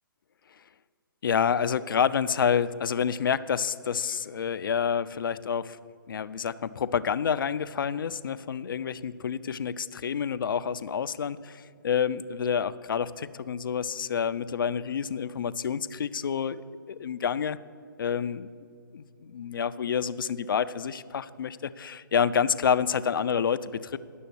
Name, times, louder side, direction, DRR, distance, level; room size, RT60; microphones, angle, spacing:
voice 1, 1.2-5.8 6.1-16.6 16.9-17.6 18.0-18.5 18.9-24.0, left 7 dB, 70° left, 14 dB, 0.4 m, -28 dB
10.5 x 6.9 x 6.9 m, 2.3 s
hypercardioid pair, 145°, 12 cm